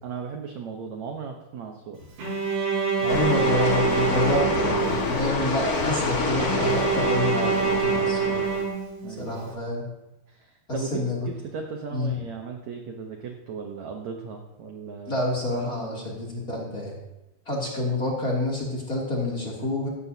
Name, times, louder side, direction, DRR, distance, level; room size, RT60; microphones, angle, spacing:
voice 1, 0.0-2.0 9.0-9.3 10.3-15.2 15.6-16.2, right 5 dB, 70° right, 3 dB, 1.7 m, -37 dB
Bowed string instrument, 2.2-5.4 6.4-9.3, right 5 dB, 85° right, 7.5 m, -26 dB
voice 2, 3.0-8.4 9.2-9.8 10.9-11.2 11.9-12.1 15.0-17.0 17.5-19.9, left 2 dB, 25° left, -3 dB, 2.8 m, -28 dB
sound 1, 3.1-8.6, left 2 dB, 60° left, 0.9 m, -27 dB
16.5 x 15.0 x 2.8 m, 0.95 s
omnidirectional pair, 4.6 m